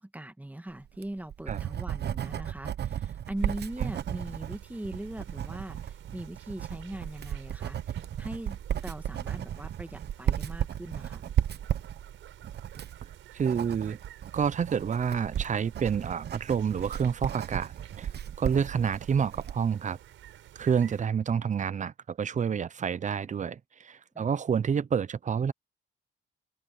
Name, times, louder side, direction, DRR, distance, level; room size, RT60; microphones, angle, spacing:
voice 1, 0.0-11.2 24.1-24.3, right 1 dB, 10° right, 2.0 m, -40 dB
Writing, 0.8-19.6, right 10 dB, 55° right, 1.1 m, -34 dB
sound 1, 3.4-21.0, right 12 dB, 80° right, 6.6 m, -52 dB
voice 2, 13.3-14.0 14.3-18.1 18.4-20.0 20.6-25.5, right 7 dB, 40° right, 0.7 m, -28 dB
open air
cardioid pair, 90°, 20 cm